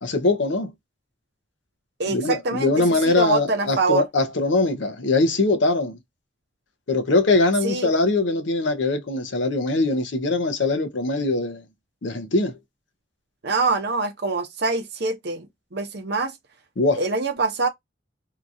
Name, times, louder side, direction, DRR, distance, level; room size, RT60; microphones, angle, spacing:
voice 1, 0.0-0.7 2.1-6.0 6.9-11.6 12.0-12.5 16.8-17.0, left 2 dB, 65° left, 0.7 m, -22 dB
voice 2, 2.0-4.1 7.6-7.9 13.4-16.4 17.0-17.7, right 3 dB, 60° right, 0.7 m, -25 dB
2.8 x 2.4 x 2.6 m
head